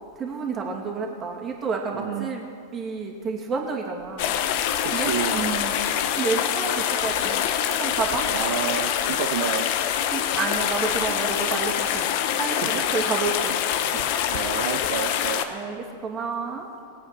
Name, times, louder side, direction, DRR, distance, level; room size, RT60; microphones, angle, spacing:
voice 1, 0.2-4.3 4.9-8.2 10.1-13.5 15.5-16.7, right 4 dB, 30° right, 1 dB, 2.6 m, -30 dB
voice 2, 1.9-2.3 4.8-5.4 8.3-9.7 12.6-12.8 13.9-15.5, right 10 dB, 65° right, 5 dB, 0.8 m, -30 dB
sound 1, 4.2-15.4, left 10 dB, 55° left, 0.9 m, -25 dB
20.0 x 8.7 x 6.1 m, 2.4 s
hypercardioid pair, 100°, 0 cm